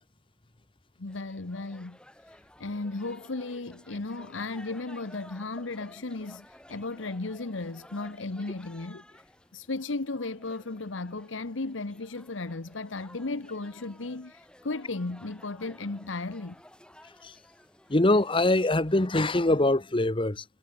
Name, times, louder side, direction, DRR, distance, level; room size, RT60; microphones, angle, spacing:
voice 1, 1.0-2.0 2.3-9.0 9.5-16.6, left 3 dB, 80° left, 1.1 m, -35 dB
sound 1, 1.1-19.1, left 1 dB, 5° left, 5.1 m, -54 dB
voice 2, 17.9-20.4, left 2 dB, 25° left, 1.0 m, -23 dB
head